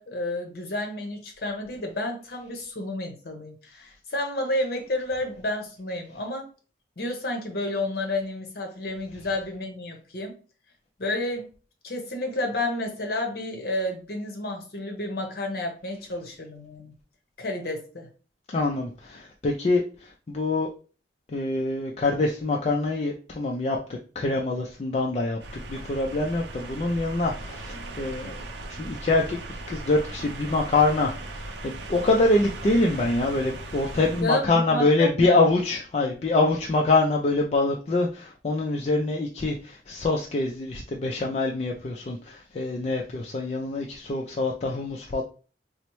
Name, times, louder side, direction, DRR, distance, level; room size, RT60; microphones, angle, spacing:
voice 1, 0.0-6.5 7.0-10.4 11.0-11.5 11.8-16.9 17.4-18.1 34.2-34.4 34.7-35.4, left 1 dB, 60° left, 3 dB, 0.8 m, -31 dB
voice 2, 18.5-20.7 21.3-23.8 24.2-28.3 28.8-29.4 29.7-45.2, left 2 dB, 35° left, 0 dB, 0.3 m, -25 dB
sound 1, 25.4-34.2, right 2 dB, 75° right, 0.5 m, -38 dB
4.2 x 2.0 x 3.0 m, 0.37 s
head